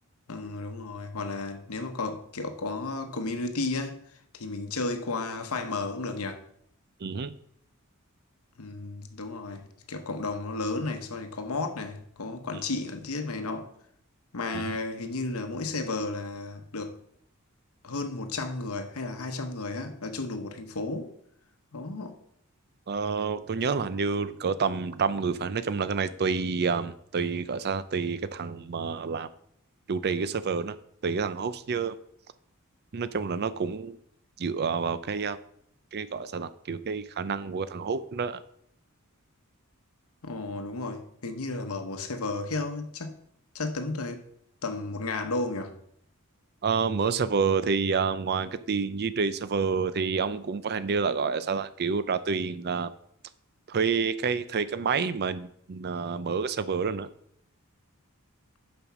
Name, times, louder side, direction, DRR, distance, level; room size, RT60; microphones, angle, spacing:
voice 1, 0.3-4.0 4.3-6.4 8.6-13.7 14.3-17.0 17.8-21.1 21.7-22.2 40.2-43.2 43.5-44.2 44.6-45.8, left 3 dB, 75° left, 1.0 m, -33 dB
voice 2, 7.0-7.3 14.5-14.8 22.9-29.3 29.9-30.8 31.0-32.0 32.9-34.0 34.4-35.4 35.9-38.4 46.6-52.9 53.7-57.1, right 5 dB, 50° right, 0.5 m, -28 dB
7.0 x 5.2 x 6.0 m
head